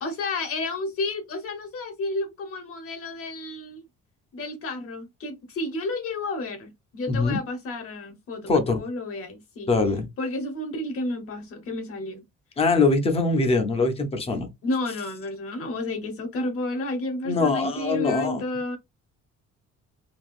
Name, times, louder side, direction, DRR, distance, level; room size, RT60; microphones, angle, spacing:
voice 1, 0.0-3.8 4.3-9.7 10.2-12.2 14.6-18.8, left 2 dB, 50° left, 0.9 m, -31 dB
voice 2, 7.1-7.4 8.5-8.8 9.7-10.1 12.6-14.5 17.3-18.4, left 3 dB, 20° left, 0.6 m, -22 dB
3.5 x 2.7 x 2.4 m
cardioid pair, 175°, 30 cm